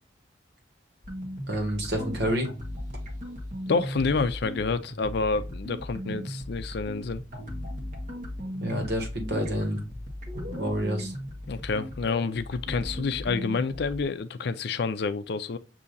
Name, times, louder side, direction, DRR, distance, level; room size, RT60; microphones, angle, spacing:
sound 1, 1.0-14.0, left 1 dB, 45° right, 1.3 m, -37 dB
voice 1, 1.5-2.5 6.0-6.2 8.6-9.8 10.3-11.1, equal, 60° right, 1.6 m, -29 dB
voice 2, 3.7-7.2 11.5-15.6, left 4 dB, 65° left, 0.5 m, -28 dB
7.0 x 2.8 x 2.6 m
head